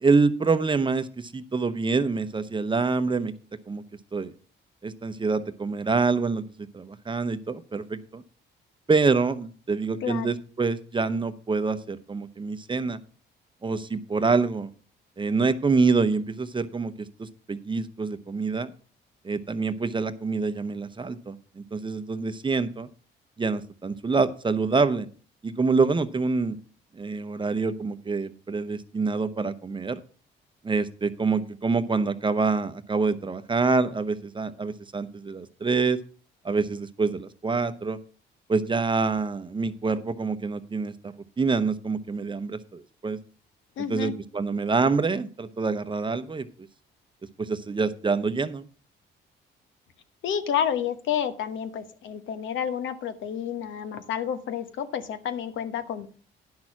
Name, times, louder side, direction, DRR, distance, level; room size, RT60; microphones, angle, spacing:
voice 1, 0.0-3.3 3.7-3.8 4.1-4.3 4.8-6.4 6.7-8.2 8.9-13.0 13.6-14.7 15.2-16.9 17.2-18.7 19.2-22.9 23.4-25.1 25.4-26.6 26.9-30.0 30.6-36.0 36.4-38.0 38.5-43.2 43.9-46.5 47.4-48.6, right 4 dB, 25° right, 12 dB, 0.7 m, -26 dB
voice 2, 10.0-10.3 43.8-44.1 50.2-56.1, left 8 dB, 75° left, 11 dB, 1.1 m, -30 dB
10.5 x 6.1 x 5.9 m, 0.41 s
cardioid pair, 90°, 20 cm